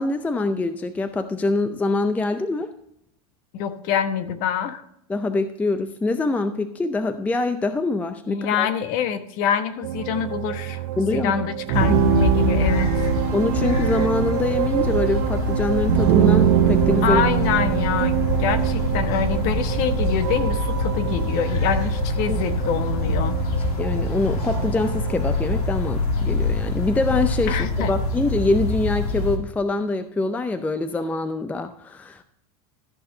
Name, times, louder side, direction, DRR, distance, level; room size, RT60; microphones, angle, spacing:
voice 1, 0.0-2.7 5.1-8.7 11.0-11.4 11.8-11.9 13.3-17.2 22.3-22.4 23.8-32.2, left 3 dB, 10° left, 10 dB, 0.5 m, -24 dB
voice 2, 3.5-4.8 8.3-13.1 17.0-23.4 27.5-27.9, left 8 dB, 45° left, 10 dB, 1.1 m, -25 dB
sound 1, 9.8-25.7, right 14 dB, 60° right, 0.7 m, -25 dB
sound 2, 11.7-29.4, left 2 dB, 80° left, 2.3 m, -25 dB
13.5 x 6.5 x 3.9 m, 0.75 s
supercardioid pair, 135°, 19 cm